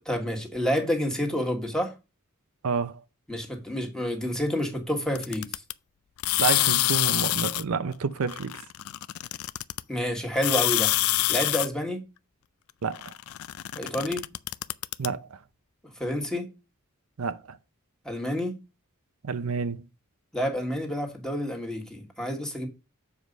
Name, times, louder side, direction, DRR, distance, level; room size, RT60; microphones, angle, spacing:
voice 1, 0.0-1.9 3.3-5.5 9.9-10.9 11.3-12.0 13.7-14.2 16.0-16.5 18.0-18.5 20.3-22.7, equal, 5° left, 1.6 m, -29 dB
voice 2, 2.6-3.0 6.4-8.6 12.8-13.1 15.0-15.4 17.2-17.6 19.2-19.9, right 5 dB, 75° right, 0.6 m, -29 dB
sound 1, 5.2-5.7 6.2-7.6 8.3-9.8 10.3-11.7 12.9-15.1, left 16 dB, 80° left, 0.4 m, -26 dB
7.3 x 4.8 x 5.2 m
head